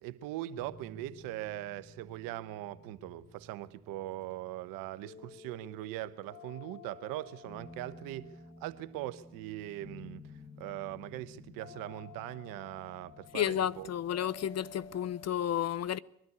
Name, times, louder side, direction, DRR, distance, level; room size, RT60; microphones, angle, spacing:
voice 1, 0.0-8.3 8.6-10.2 10.6-13.9, right 15 dB, 85° right, 1.0 m, -41 dB
sound 1, 0.6-15.3, left 4 dB, 25° left, 1.5 m, -53 dB
voice 2, 13.3-16.0, left 10 dB, 50° left, 0.7 m, -32 dB
22.0 x 12.5 x 9.6 m
supercardioid pair, 60°, 33 cm